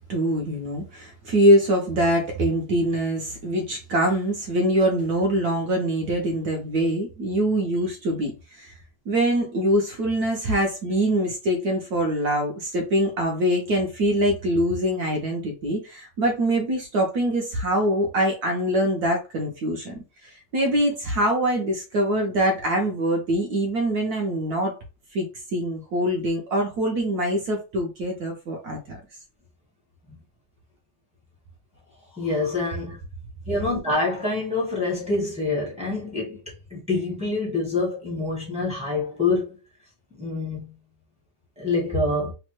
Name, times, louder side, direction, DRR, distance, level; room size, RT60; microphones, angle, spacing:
voice 1, 0.1-8.8 9.1-24.8 25.1-29.0, right 1 dB, 65° right, 1.0 m, -24 dB
voice 2, 32.1-33.0 33.5-36.4 36.7-39.6 40.2-40.7 41.6-42.3, left 3 dB, 5° right, 0.6 m, -26 dB
3.4 x 2.1 x 2.9 m
omnidirectional pair, 2.1 m